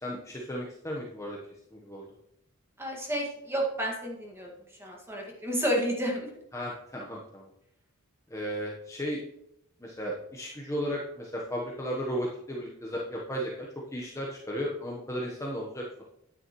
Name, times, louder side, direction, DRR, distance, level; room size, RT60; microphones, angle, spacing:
voice 1, 0.0-1.4 1.7-2.1 6.5-7.5 8.3-9.2 9.8-13.7 13.9-16.0, equal, 15° left, -2 dB, 1.1 m, -35 dB
voice 2, 2.8-4.5 4.8-6.3, equal, 10° right, -1 dB, 1.9 m, -30 dB
9.6 x 9.5 x 3.1 m, 0.78 s
head